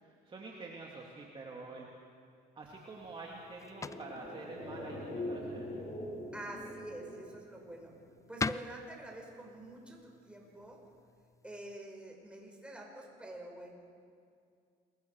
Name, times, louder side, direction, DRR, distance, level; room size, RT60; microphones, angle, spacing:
voice 1, 0.0-1.9 2.6-5.8, right 3 dB, 30° right, -2 dB, 2.6 m, -47 dB
sound 1, 2.6-11.8, left 4 dB, 20° left, 0.4 m, -45 dB
sound 2, 3.5-8.1 8.3-8.4, left 1 dB, 45° left, 6.3 m, -43 dB
voice 2, 6.3-7.9 8.3-10.8 11.4-13.7, right 1 dB, 5° right, 0 dB, 5.3 m, -47 dB
27.0 x 22.5 x 4.8 m, 2.3 s
cardioid pair, 110°, 17 cm